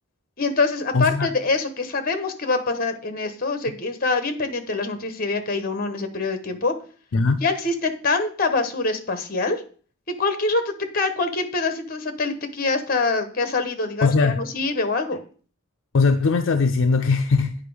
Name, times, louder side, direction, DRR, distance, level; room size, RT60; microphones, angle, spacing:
voice 1, 0.4-6.7 7.4-9.6 10.2-15.2, left 3 dB, 40° left, 1.1 m, -25 dB
voice 2, 0.9-1.3 7.1-7.4 14.0-14.4 15.9-17.5, left 4 dB, 60° left, 0.5 m, -19 dB
8.5 x 5.2 x 4.9 m
head